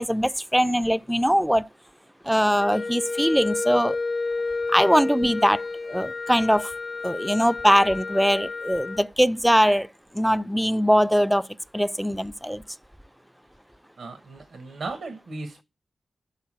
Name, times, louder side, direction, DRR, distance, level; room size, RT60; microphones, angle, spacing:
voice 1, 0.0-1.7 2.2-4.0 4.7-5.6 5.9-6.7 7.0-9.9 10.1-11.5 11.7-12.6, equal, 5° right, 0.3 m, -21 dB
Wind instrument woodwind instrument, 2.6-9.1, left 3 dB, 60° left, 0.6 m, -30 dB
voice 2, 14.0-15.6, right 3 dB, 85° right, 1.1 m, -36 dB
5.7 x 3.9 x 6.0 m
cardioid pair, 60°, 0 cm